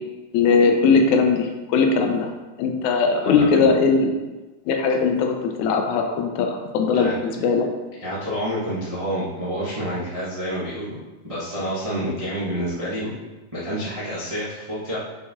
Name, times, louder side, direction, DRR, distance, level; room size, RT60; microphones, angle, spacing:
voice 1, 0.3-2.3 2.6-4.1 4.7-7.7, left 5 dB, 80° left, 3 dB, 2.1 m, -19 dB
voice 2, 3.2-3.7 6.9-7.1 8.0-11.0 11.2-13.1 13.5-15.0, equal, 45° right, -9 dB, 0.4 m, -28 dB
6.5 x 4.1 x 3.6 m, 1.2 s
omnidirectional pair, 3.3 m